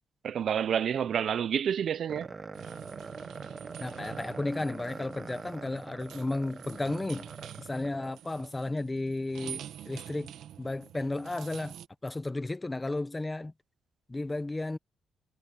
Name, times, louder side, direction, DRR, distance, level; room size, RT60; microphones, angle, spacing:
voice 1, 0.2-2.3, right 8 dB, 55° right, 0.6 m, -29 dB
sound 1, 2.1-8.5, right 4 dB, 25° right, 0.9 m, -44 dB
sound 2, 2.5-11.9, right 10 dB, 85° right, 1.5 m, -47 dB
voice 2, 3.8-7.3 7.6-10.3 10.6-11.7 12.0-13.5 14.1-14.8, left 2 dB, 15° left, 0.7 m, -33 dB
cardioid pair, 150°, 0 cm